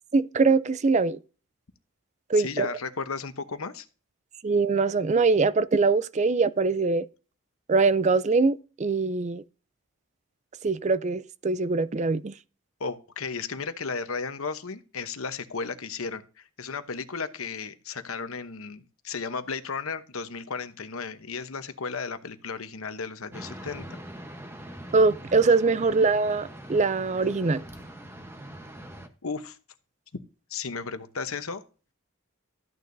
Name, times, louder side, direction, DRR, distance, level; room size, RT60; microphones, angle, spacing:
voice 1, 0.1-1.2 2.3-2.7 4.4-7.1 7.7-9.4 10.6-12.3 24.9-27.7, right 4 dB, 30° right, 0.4 m, -23 dB
voice 2, 2.3-3.9 12.8-24.0 29.2-29.6 30.5-31.6, left 5 dB, 75° left, 0.9 m, -34 dB
sound 1, 23.3-29.1, right 1 dB, 10° right, 1.0 m, -43 dB
13.5 x 9.4 x 2.7 m
head